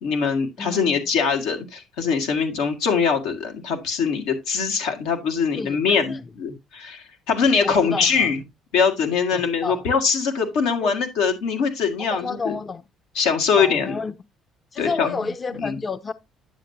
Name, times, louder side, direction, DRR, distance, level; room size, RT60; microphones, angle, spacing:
voice 1, 0.0-8.4 8.7-12.5 13.2-14.0 14.8-15.2 15.6-15.8, left 5 dB, 90° left, 2.1 m, -22 dB
voice 2, 0.6-1.0 5.5-6.2 7.6-8.3 9.3-9.9 10.8-10.9 12.1-12.8 13.6-14.1 14.7-16.1, left 4 dB, 30° left, 0.5 m, -30 dB
9.8 x 7.2 x 2.8 m
cardioid pair, 100°, 0 cm